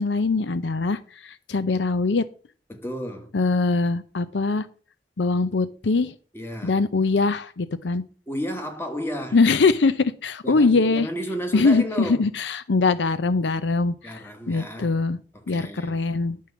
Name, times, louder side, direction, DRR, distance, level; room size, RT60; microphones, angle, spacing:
voice 1, 0.0-2.2 3.3-4.7 5.2-6.1 6.6-8.0 9.3-11.1 11.5-15.2 15.5-16.4, left 3 dB, 75° left, 0.6 m, -22 dB
voice 2, 2.7-3.3 6.3-6.8 8.3-9.4 10.4-12.3 14.0-15.0 15.3-16.0, equal, 15° left, 1.6 m, -32 dB
10.5 x 4.6 x 7.0 m
head